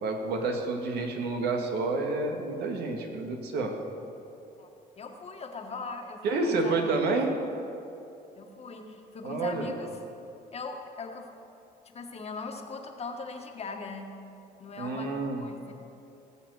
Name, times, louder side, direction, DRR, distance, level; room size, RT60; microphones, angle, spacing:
voice 1, 0.0-3.7 6.2-7.3 9.2-9.6 14.8-15.4, right 3 dB, 75° right, 2 dB, 2.0 m, -29 dB
voice 2, 5.0-7.0 8.4-9.9 10.5-11.3 11.9-14.1 14.6-15.1 15.4-15.7, left 4 dB, 40° left, 3 dB, 1.6 m, -40 dB
19.5 x 7.3 x 6.5 m, 2.8 s
cardioid pair, 110°, 17 cm